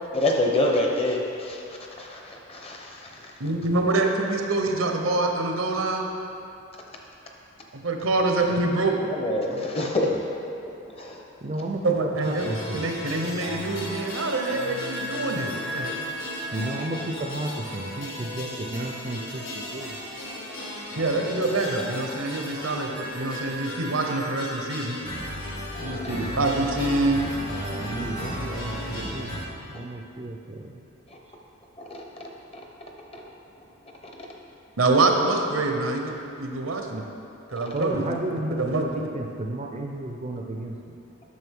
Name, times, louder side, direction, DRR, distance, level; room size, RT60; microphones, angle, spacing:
voice 1, 0.1-3.4 9.0-10.1 10.9-11.2 16.6-16.9 19.8-19.9 20.2-20.4 25.7-26.1 31.1-31.2 31.9-32.2 32.5-32.6 33.1-33.2 34.2-34.3, left 1 dB, 30° left, 0 dB, 0.8 m, -28 dB
voice 2, 3.4-6.1 7.7-8.9 11.8-15.9 21.0-25.0 25.8-27.2 34.8-37.0 37.5-38.1 38.6-38.8, right 2 dB, 80° right, 2 dB, 0.9 m, -25 dB
voice 3, 11.4-12.8 16.5-20.0 27.5-29.3 29.7-30.8 37.7-40.8, right 1 dB, 35° right, 1 dB, 0.5 m, -32 dB
sound 1, 12.2-29.4, equal, 75° left, 1.7 m, -35 dB
9.3 x 6.3 x 3.6 m, 2.7 s
head